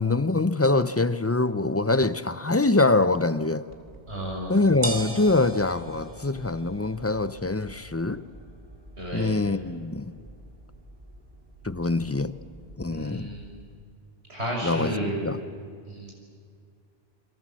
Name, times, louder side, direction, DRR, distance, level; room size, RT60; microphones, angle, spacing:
voice 1, 0.0-3.6 4.5-8.2 9.1-10.1 11.6-12.3 12.8-13.3 14.6-15.0 15.2-15.4, left 2 dB, 20° left, 13 dB, 0.4 m, -24 dB
sound 1, 3.7-13.8, right 2 dB, 50° right, 2.4 m, -42 dB
voice 2, 4.1-4.6 9.0-9.3 12.9-13.5 14.3-15.2 15.9-16.1, right 1 dB, 85° right, -1 dB, 6.4 m, -32 dB
29.0 x 23.0 x 7.6 m, 2.2 s
omnidirectional pair, 1.1 m